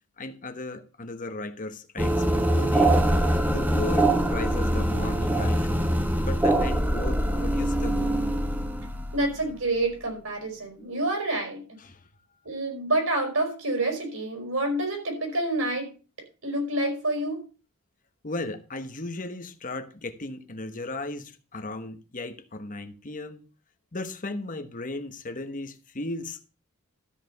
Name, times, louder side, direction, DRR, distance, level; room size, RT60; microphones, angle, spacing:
voice 1, 0.2-3.0 3.4-5.8 6.3-8.1 11.8-12.0 18.2-23.4 23.9-26.5, left 2 dB, 35° left, 1.1 m, -36 dB
sound 1, 2.0-9.9, right 1 dB, 10° right, 1.0 m, -24 dB
voice 2, 9.1-11.6 12.4-15.9 16.4-17.4, right 2 dB, 65° right, 4.6 m, -28 dB
13.0 x 5.0 x 6.5 m
head